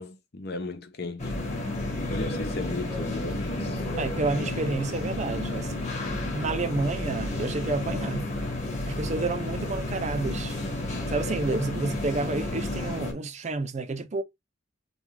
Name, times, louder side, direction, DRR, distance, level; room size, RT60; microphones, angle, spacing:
voice 1, 0.0-1.3 2.1-3.8, left 3 dB, 50° left, 0.7 m, -36 dB
sound 1, 1.2-13.1, left 2 dB, 35° left, 1.5 m, -31 dB
voice 2, 4.0-6.0 6.3-8.3 8.9-10.6 11.1-14.2, right 3 dB, 35° right, 0.5 m, -30 dB
5.2 x 2.4 x 3.1 m
head